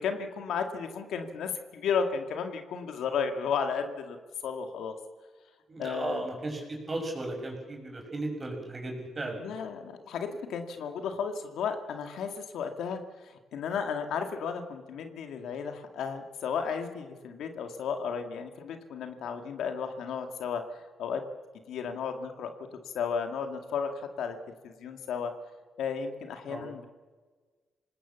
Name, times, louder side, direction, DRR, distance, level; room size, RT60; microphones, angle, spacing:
voice 1, 0.0-4.2 4.4-4.9 5.8-6.3 9.4-13.0 13.3-21.2 21.7-22.5 22.9-24.4 24.6-25.3 25.8-26.9, left 6 dB, 85° left, 6 dB, 2.2 m, -33 dB
voice 2, 5.7-9.4 26.5-26.7, right 2 dB, 30° right, 2 dB, 6.6 m, -35 dB
26.5 x 19.5 x 7.1 m, 1.4 s
cardioid pair, 95°, 0 cm